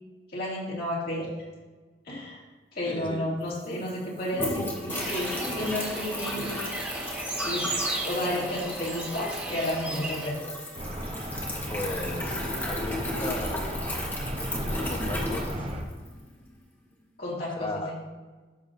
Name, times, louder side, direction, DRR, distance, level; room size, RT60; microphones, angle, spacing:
voice 1, 0.3-1.3 2.1-2.4 2.7-6.5 7.4-7.6 8.0-10.5 17.2-18.0, left 1 dB, 60° left, -6 dB, 2.5 m, -32 dB
voice 2, 2.8-3.3 11.7-13.7 14.5-15.7 17.6-17.9, left 1 dB, 30° left, 2 dB, 1.1 m, -36 dB
sound 1, 3.1-3.2 3.4-16.2, left 1 dB, 10° left, 1.3 m, -35 dB
sound 2, 4.9-10.3, right 2 dB, 10° right, 1.6 m, -34 dB
sound 3, 10.7-15.8, equal, 35° right, 0.9 m, -34 dB
12.5 x 7.0 x 2.7 m, 1.3 s
head